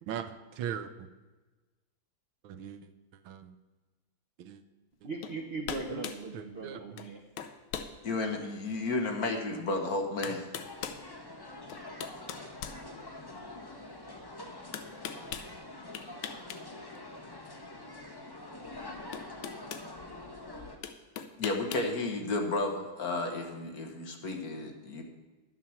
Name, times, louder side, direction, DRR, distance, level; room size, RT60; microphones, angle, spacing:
voice 1, 0.0-0.9 2.4-2.8 3.2-3.5 4.4-4.6 5.9-6.0 6.3-6.8 10.2-10.6, right 9 dB, 75° right, 10 dB, 1.4 m, -39 dB
voice 2, 5.0-7.2, right 3 dB, 60° right, 4 dB, 0.6 m, -39 dB
sound 1, 5.2-5.4 5.7-6.2 7.0-7.1 7.4-7.9 8.5-8.6 9.7-9.8 10.2-11.0 11.7-13.4 14.7-15.5 15.9-16.6 16.9-17.1 18.5-18.6 19.1-19.9 20.8-21.9, left 8 dB, 75° left, 1.6 m, -40 dB
voice 3, 8.0-10.5 21.4-25.0, left 2 dB, 50° left, 3 dB, 1.6 m, -32 dB
sound 2, 10.6-20.8, left 2 dB, 30° left, 0.4 m, -45 dB
11.0 x 7.6 x 7.0 m, 1.2 s
omnidirectional pair, 2.3 m